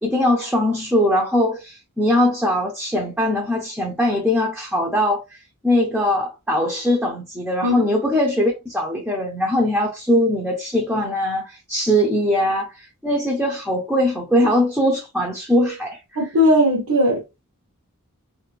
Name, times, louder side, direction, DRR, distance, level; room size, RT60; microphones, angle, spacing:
voice 1, 0.0-5.2 5.6-16.0, left 1 dB, 5° right, 0.6 m, -21 dB
voice 2, 16.2-17.4, left 1 dB, 75° right, 0.9 m, -18 dB
2.6 x 2.5 x 3.1 m
head